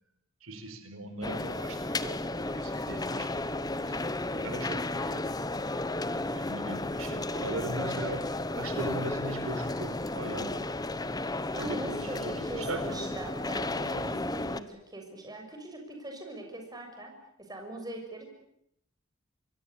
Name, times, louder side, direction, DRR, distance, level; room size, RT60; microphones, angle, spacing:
voice 1, 0.4-3.4 3.9-4.0 4.3-5.3 6.3-10.6 11.6-13.0 14.5-14.6, right 1 dB, 90° right, 7 dB, 4.7 m, -39 dB
sound 1, 1.2-14.6, left 2 dB, 20° left, 1.1 m, -33 dB
voice 2, 3.7-4.1 11.5-17.1 17.4-18.3, right 1 dB, 20° right, 2 dB, 6.3 m, -41 dB
26.5 x 21.0 x 8.5 m, 0.75 s
head